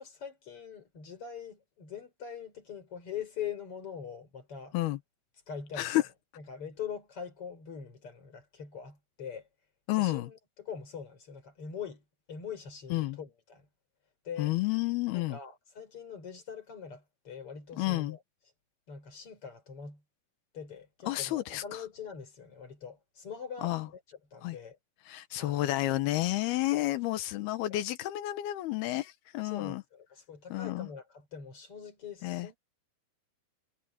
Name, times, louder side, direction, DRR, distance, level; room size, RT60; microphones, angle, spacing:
voice 1, 0.0-4.8 5.5-6.1 6.4-9.5 9.9-13.7 14.2-14.5 15.1-18.2 18.9-20.0 20.5-24.8 25.4-25.8 26.7-27.0 27.6-27.8 29.4-32.6, left 7 dB, 35° left, 5.7 m, -43 dB
voice 2, 9.9-10.3 12.9-13.2 14.4-15.4 17.8-18.2 21.1-21.8 23.6-23.9 24.4-24.6 25.1-29.8 30.5-30.9 32.2-32.5, left 16 dB, 90° left, 3.1 m, -30 dB
omnidirectional pair, 4.3 m